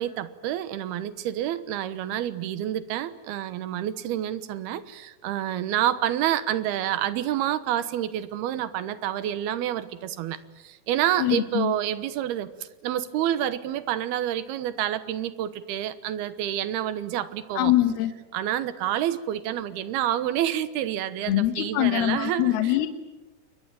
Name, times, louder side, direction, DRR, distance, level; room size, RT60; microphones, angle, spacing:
voice 1, 0.0-17.7 18.3-22.8, right 11 dB, 80° right, 14 dB, 3.1 m, -28 dB
voice 2, 11.2-11.7 17.6-18.1 21.2-22.9, left 13 dB, 80° left, 8 dB, 3.2 m, -23 dB
28.5 x 22.0 x 8.9 m, 1.1 s
omnidirectional pair, 4.5 m